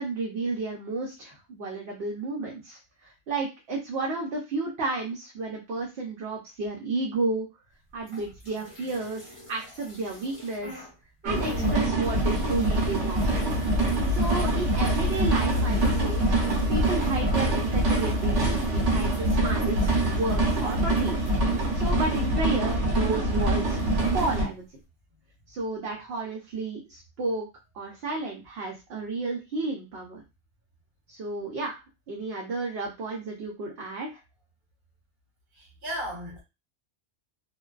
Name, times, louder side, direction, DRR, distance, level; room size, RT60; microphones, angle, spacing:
voice 1, 0.0-7.5 7.9-10.9 11.2-13.3 14.1-16.3 16.7-19.9 20.1-23.8 24.1-24.6 25.5-27.5 27.7-30.2 31.1-31.7 32.1-34.2, right 3 dB, 65° right, 0.8 m, -32 dB
sound 1, 8.0-10.9 11.2-23.1 23.4-24.4, right 2 dB, 25° left, 1.1 m, -46 dB
sound 2, 11.3-24.4, right 1 dB, 90° right, 1.0 m, -24 dB
voice 2, 35.5-36.4, equal, 45° right, 1.1 m, -37 dB
2.5 x 2.2 x 2.3 m
omnidirectional pair, 1.2 m